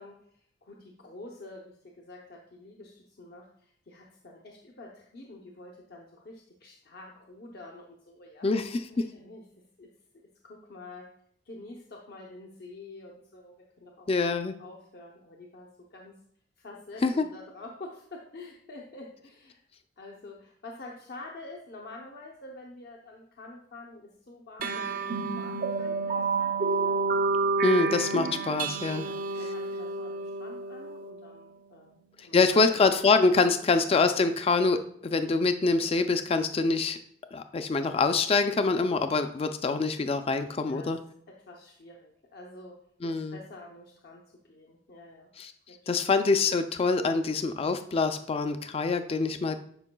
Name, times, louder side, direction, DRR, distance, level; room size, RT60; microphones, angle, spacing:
voice 1, 0.0-8.5 8.9-9.4 9.8-9.9 10.4-11.1 11.4-14.2 14.6-16.2 16.6-19.6 20.0-27.0 27.7-28.0 29.0-32.7 33.5-33.6 40.6-40.9 41.3-42.8 43.0-45.3 45.7-45.9, left 2 dB, 60° left, -1 dB, 0.8 m, -47 dB
voice 2, 8.4-9.1 14.1-14.5 17.0-17.3 27.6-29.1 32.2-37.0 37.3-41.0 43.0-43.4 45.4-45.5 45.9-49.6, left 3 dB, 30° left, 9 dB, 0.4 m, -25 dB
sound 1, 24.6-31.5, right 4 dB, 50° right, 0.5 m, -30 dB
11.0 x 5.3 x 2.2 m, 0.66 s
head